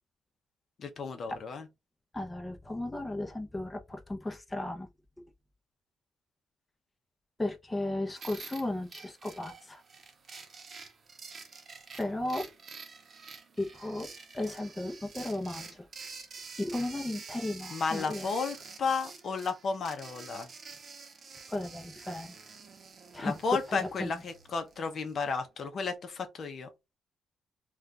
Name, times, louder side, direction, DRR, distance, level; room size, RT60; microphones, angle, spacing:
voice 1, 0.8-1.7 17.7-20.5 23.2-26.7, left 5 dB, 50° left, 0.6 m, -33 dB
voice 2, 2.1-4.9 7.4-9.8 12.0-12.5 13.6-15.9 16.6-18.3 21.5-22.3 23.1-24.1, left 1 dB, 15° left, 0.6 m, -35 dB
sound 1, 8.2-25.1, right 4 dB, 45° right, 0.7 m, -48 dB
2.3 x 2.3 x 3.9 m
cardioid pair, 90°, 0 cm